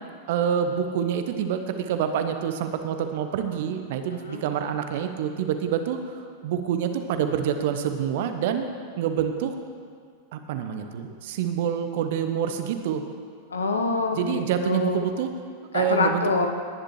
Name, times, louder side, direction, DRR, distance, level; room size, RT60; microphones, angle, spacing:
voice 1, 0.3-8.7 9.0-9.5 10.3-13.0 14.2-15.3 15.7-16.2, right 8 dB, 50° right, 7 dB, 0.9 m, -27 dB
voice 2, 13.5-15.1 15.7-16.5, left 3 dB, 75° left, 5 dB, 1.0 m, -25 dB
18.5 x 10.0 x 3.2 m, 2.1 s
figure-of-eight pair, 90°, 0 cm